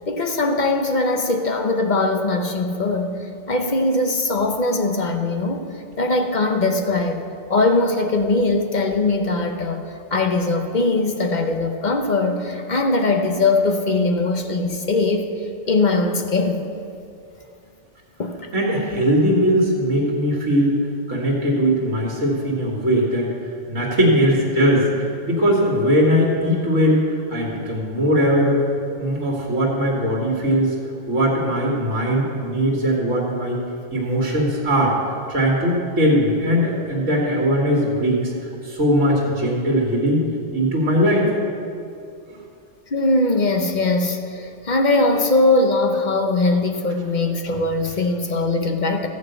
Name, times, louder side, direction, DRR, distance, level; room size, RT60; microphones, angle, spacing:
voice 1, 0.1-5.7 6.0-7.2 7.5-9.9 10.1-16.7 18.2-18.4 42.9-49.1, left 2 dB, 40° left, 4 dB, 0.9 m, -21 dB
voice 2, 18.5-20.8 21.1-23.3 23.7-27.0 27.3-28.6 29.0-30.7 31.1-33.6 33.9-35.0 35.3-41.3, equal, 80° right, -3 dB, 2.1 m, -20 dB
14.0 x 5.4 x 7.9 m, 2.5 s
omnidirectional pair, 1.3 m